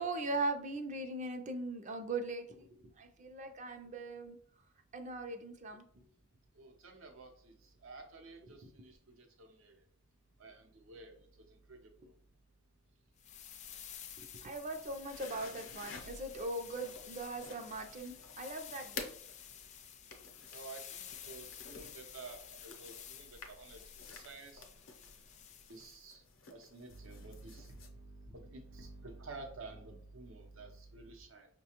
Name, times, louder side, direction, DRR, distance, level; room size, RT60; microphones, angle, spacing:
voice 1, 0.0-4.4 4.9-5.8 14.2-19.1, right 2 dB, 35° right, 6 dB, 0.4 m, -40 dB
voice 2, 6.6-7.5 7.8-9.7 10.4-11.2 11.7-11.8 20.5-23.8 24.1-24.6 25.7-26.2 26.5-31.5, right 3 dB, 80° right, 4 dB, 0.7 m, -51 dB
sound 1, 13.2-26.0, left 9 dB, 35° left, 0.3 m, -52 dB
sound 2, 15.0-27.9, left 4 dB, 80° left, 0.6 m, -52 dB
5.5 x 2.2 x 2.9 m, 0.62 s
head